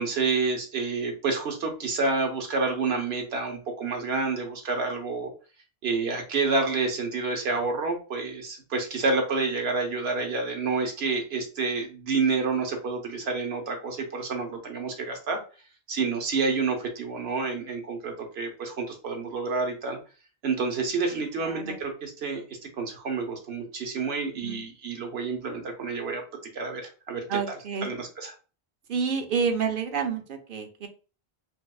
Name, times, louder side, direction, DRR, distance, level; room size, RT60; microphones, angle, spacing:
voice 1, 0.0-5.3 5.8-15.4 15.9-20.0 20.4-22.4 22.8-26.2 26.5-28.3, right 4 dB, 80° right, 3 dB, 1.1 m, -29 dB
voice 2, 21.4-21.8 24.4-24.6 27.3-27.9 28.9-30.9, right 6 dB, 60° right, 5 dB, 0.8 m, -29 dB
4.5 x 2.3 x 2.3 m, 0.35 s
omnidirectional pair, 1.0 m